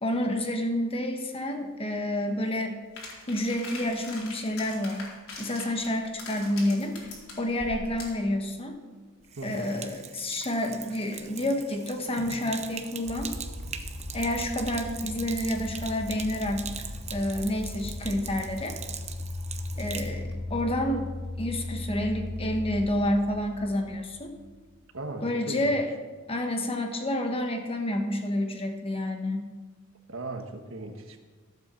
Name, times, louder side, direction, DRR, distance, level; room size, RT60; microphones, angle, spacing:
voice 1, 0.0-2.8 3.3-5.1 5.4-7.0 7.4-8.8 9.4-13.3 14.1-16.7 17.1-18.8 19.8-21.1 21.4-24.3 25.2-25.9 26.3-29.5, left 1 dB, 25° left, 4 dB, 1.3 m, -29 dB
sound 1, 3.0-8.2, left 3 dB, 80° left, 4.1 m, -42 dB
Sink (filling or washing), 9.2-20.1, right 7 dB, 30° right, 0.9 m, -41 dB
voice 2, 9.4-9.8 24.9-25.8 30.1-31.2, right 2 dB, 65° right, 5 dB, 1.5 m, -37 dB
sound 2, 13.0-24.8, left 2 dB, 5° right, 2.3 m, -38 dB
15.0 x 8.2 x 6.9 m, 1.4 s
head